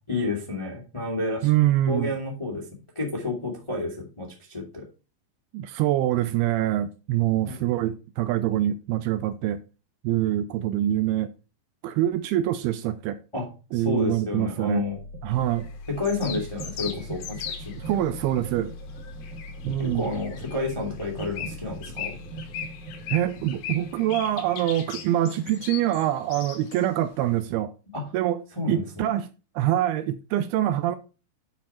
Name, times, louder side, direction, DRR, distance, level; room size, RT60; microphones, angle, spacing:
voice 1, 0.1-1.5 1.9-2.7 2.9-4.8 7.4-7.6 13.3-15.0 15.9-18.0 19.8-22.1 27.9-28.1 28.5-28.8, left 3 dB, 15° left, 0.9 m, -30 dB
voice 2, 1.4-2.1 5.5-9.6 10.0-11.3 11.8-13.2 13.7-14.9 15.2-15.7 17.8-18.7 19.6-20.1 23.1-27.7 28.1-29.3 29.6-31.0, right 13 dB, 80° right, 2.4 m, -25 dB
sound 1, 14.4-26.4, equal, 65° right, 1.9 m, -40 dB
sound 2, 15.4-18.0 18.3-18.5 18.8-26.9, left 8 dB, 85° left, 3.4 m, -39 dB
9.4 x 4.6 x 4.2 m
omnidirectional pair, 4.7 m